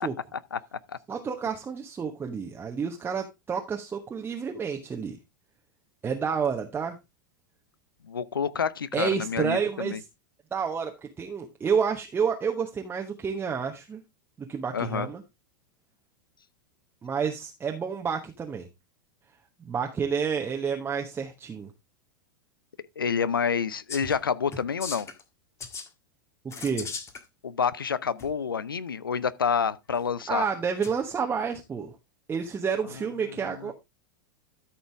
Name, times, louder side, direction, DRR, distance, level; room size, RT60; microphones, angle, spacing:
voice 1, 0.3-1.0 8.1-10.0 14.7-15.1 23.0-25.1 27.4-30.5 33.5-33.7, left 6 dB, 80° left, 0.6 m, -28 dB
voice 2, 1.1-5.2 6.0-7.0 8.9-10.0 10.5-14.0 14.4-15.2 17.0-18.7 19.6-21.7 26.6-26.9 30.3-31.9 32.3-33.7, right 6 dB, 20° right, 1.1 m, -29 dB
sound 1, 23.9-24.2 24.5-25.2 25.6-25.9 26.5-27.2 28.2-28.3 30.8-30.9, left 5 dB, 25° left, 1.6 m, -37 dB
13.0 x 5.8 x 3.4 m
figure-of-eight pair, 90°, 11 cm